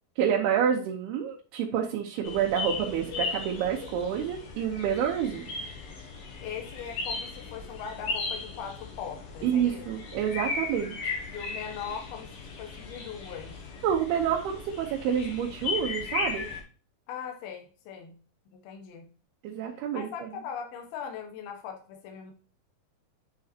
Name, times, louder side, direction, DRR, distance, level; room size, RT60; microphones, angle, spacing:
voice 1, 0.2-5.5 9.4-11.2 13.8-16.5 19.4-20.3, right 8 dB, 85° right, 0 dB, 3.0 m, -28 dB
sound 1, 2.2-16.6, left 4 dB, 60° left, 3.4 m, -36 dB
voice 2, 6.4-9.9 11.3-12.3 12.6-13.7 17.1-18.1 18.5-19.1 19.9-22.3, left 7 dB, 75° left, 3 dB, 3.2 m, -40 dB
9.0 x 6.6 x 2.8 m, 0.38 s
omnidirectional pair, 4.5 m